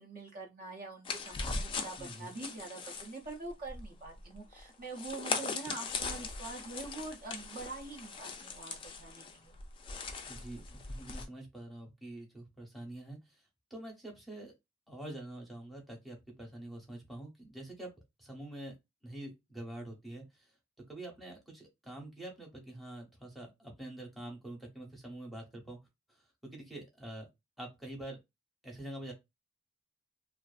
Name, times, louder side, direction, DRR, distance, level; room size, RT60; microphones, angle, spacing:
voice 1, 0.0-9.6, right 3 dB, 40° right, 0.5 m, -45 dB
sound 1, 1.0-11.3, left 4 dB, 25° left, 0.3 m, -40 dB
voice 2, 2.0-2.3 10.3-13.4 13.7-14.5 14.9-17.9 18.2-18.8 19.0-20.5 20.9-25.8 26.1-26.2 26.4-27.3 27.6-28.2 28.6-29.1, right 1 dB, ahead, 0.7 m, -46 dB
2.5 x 2.4 x 2.3 m
head